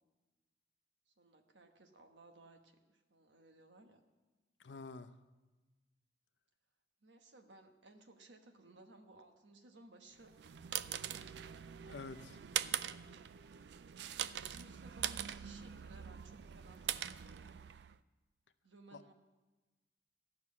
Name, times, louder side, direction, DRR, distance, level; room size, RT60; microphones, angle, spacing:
voice 1, 1.1-4.0 7.0-10.3 10.7-11.4 14.0-17.7 18.6-19.1, right 2 dB, 90° right, 5 dB, 1.2 m, -60 dB
voice 2, 4.6-5.1 11.8-12.4 18.9-19.0, left 4 dB, 80° left, 10 dB, 0.6 m, -48 dB
sound 1, 10.2-18.0, right 10 dB, 70° right, 0.4 m, -42 dB
13.5 x 6.0 x 8.4 m, 1.2 s
head